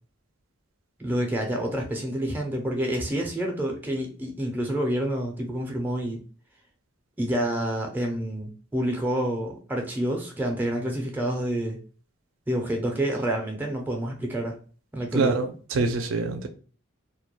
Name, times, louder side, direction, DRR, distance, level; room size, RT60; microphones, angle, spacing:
voice 1, 1.0-6.2 7.2-11.8 12.5-14.5 14.9-15.4, right 1 dB, 10° right, 0.4 m, -28 dB
voice 2, 15.1-16.5, right 3 dB, 70° right, 0.4 m, -25 dB
2.2 x 2.1 x 2.9 m
head